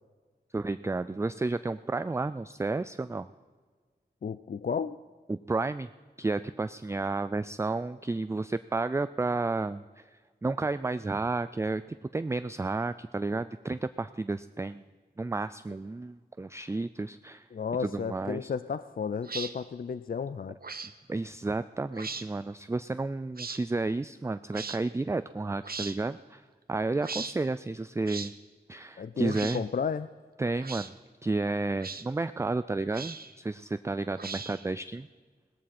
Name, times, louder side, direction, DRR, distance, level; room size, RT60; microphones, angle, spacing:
voice 1, 0.5-3.3 5.3-5.9 6.2-11.8 12.1-14.8 15.2-17.5 17.8-18.5 21.1-28.3 28.7-29.6 30.4-30.9 31.2-35.1, right 3 dB, 15° right, 13 dB, 0.3 m, -32 dB
voice 2, 4.2-5.0 17.5-20.6 29.0-30.1, left 6 dB, 55° left, 13 dB, 0.4 m, -33 dB
sound 1, 19.2-19.5 20.6-20.9 21.9-22.3 23.4-23.6 24.5-24.8 25.6-26.0 27.0-27.3 28.1-28.3 29.3-29.6 30.6-30.9 31.8-32.0 32.9-33.3 34.2-34.7, right 4 dB, 60° right, 0.8 m, -38 dB
18.0 x 14.0 x 4.2 m, 1.5 s
wide cardioid pair, 60°, 17 cm